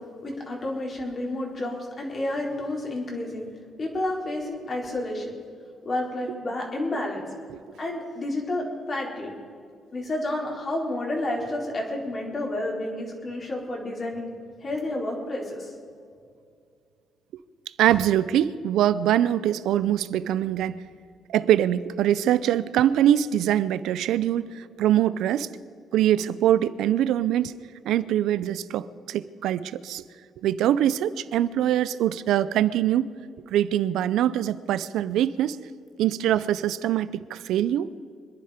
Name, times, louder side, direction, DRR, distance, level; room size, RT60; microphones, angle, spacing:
voice 1, 0.2-3.5 3.8-5.3 5.8-7.3 7.8-9.3 9.9-14.3 14.6-15.7, left 1 dB, 40° left, -1 dB, 4.3 m, -30 dB
voice 2, 17.8-20.8 21.3-25.5 25.9-27.6 27.8-30.0 30.4-33.1 33.5-35.6 36.0-37.9, right 11 dB, 85° right, 16 dB, 0.6 m, -23 dB
25.0 x 10.5 x 5.1 m, 2.2 s
cardioid pair, 90°, 0 cm